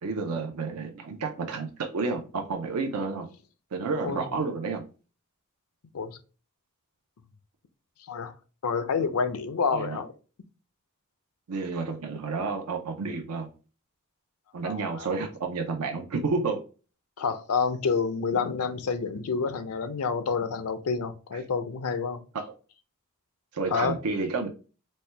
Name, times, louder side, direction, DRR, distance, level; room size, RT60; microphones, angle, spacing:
voice 1, 0.0-3.3 3.7-4.8 9.7-10.0 11.5-13.5 14.5-16.6 21.3-21.4 22.3-22.5 23.5-24.5, right 4 dB, 80° right, 0.6 m, -30 dB
voice 2, 8.6-10.1 14.6-15.1 17.2-22.2 23.7-23.9, left 5 dB, 70° left, 0.5 m, -28 dB
4.2 x 2.2 x 3.2 m
head